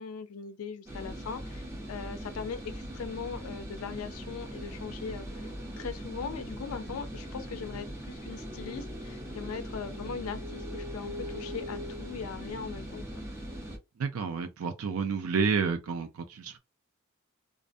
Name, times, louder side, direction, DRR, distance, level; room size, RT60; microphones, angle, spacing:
voice 1, 0.0-5.5 5.8-13.3, left 5 dB, 80° left, 0.4 m, -40 dB
sound 1, 0.9-13.8, equal, 15° right, 0.7 m, -40 dB
voice 2, 14.0-16.6, right 5 dB, 75° right, 0.4 m, -30 dB
2.5 x 2.1 x 2.5 m
head